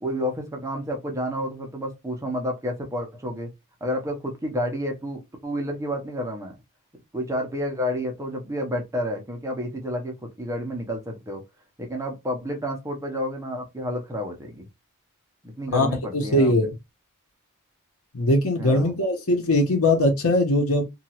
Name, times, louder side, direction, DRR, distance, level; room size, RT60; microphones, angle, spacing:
voice 1, 0.0-3.5 3.8-6.6 7.1-11.4 11.8-14.7 15.4-16.7 18.6-18.9, equal, 15° right, 0.6 m, -30 dB
voice 2, 16.1-16.7 18.1-20.9, left 1 dB, 75° left, 1.0 m, -20 dB
2.9 x 2.3 x 2.9 m
head